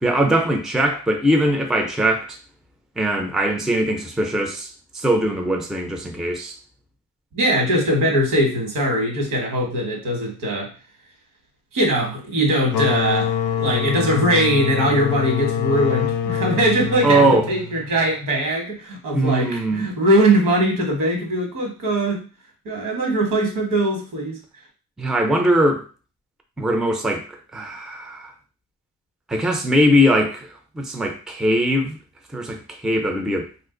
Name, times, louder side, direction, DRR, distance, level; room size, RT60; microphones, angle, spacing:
voice 1, 0.0-2.4 3.0-6.6 17.0-17.5 19.1-19.9 25.0-25.8 26.6-27.2 27.5-28.3 29.3-32.0 32.3-33.5, equal, ahead, 0.4 m, -21 dB
voice 2, 7.3-10.7 11.7-22.2 22.6-24.4, right 1 dB, 80° right, 1.4 m, -21 dB
sound 1, 12.7-18.1, left 8 dB, 75° left, 0.5 m, -25 dB
2.5 x 2.4 x 3.7 m
cardioid pair, 115°, 31 cm